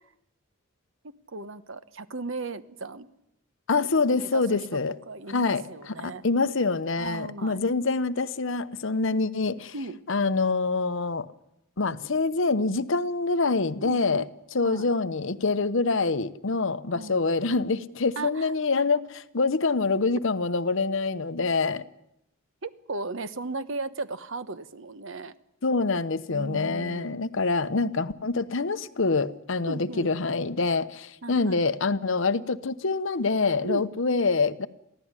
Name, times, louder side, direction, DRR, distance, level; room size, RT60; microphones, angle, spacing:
voice 1, 1.0-3.1 4.1-4.6 5.1-6.2 7.0-7.6 9.7-10.0 13.8-14.3 14.6-14.9 16.9-17.1 18.2-18.5 22.6-25.3 26.3-27.2 29.7-30.1 31.2-31.6 33.6-33.9, right 3 dB, 65° right, 13 dB, 1.1 m, -36 dB
voice 2, 3.7-4.9 5.3-9.7 10.1-11.3 11.8-14.3 14.5-21.8 25.6-34.7, left 3 dB, 65° left, 13 dB, 0.9 m, -26 dB
23.5 x 16.0 x 9.7 m, 0.82 s
head